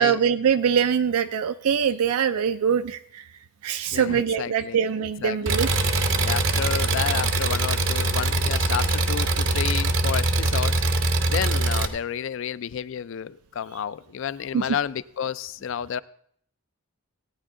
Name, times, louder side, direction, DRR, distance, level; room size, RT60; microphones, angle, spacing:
voice 1, 0.0-3.2 3.6-5.7 6.0-6.1 14.5-14.6, right 7 dB, 80° right, 10 dB, 0.4 m, -23 dB
voice 2, 3.9-4.8 5.2-5.7 6.2-10.8 11.3-16.0, left 8 dB, 60° left, 18 dB, 0.3 m, -31 dB
Engine, 5.5-11.9, right 2 dB, 55° right, 0.8 m, -23 dB
17.0 x 9.0 x 3.7 m, 0.66 s
head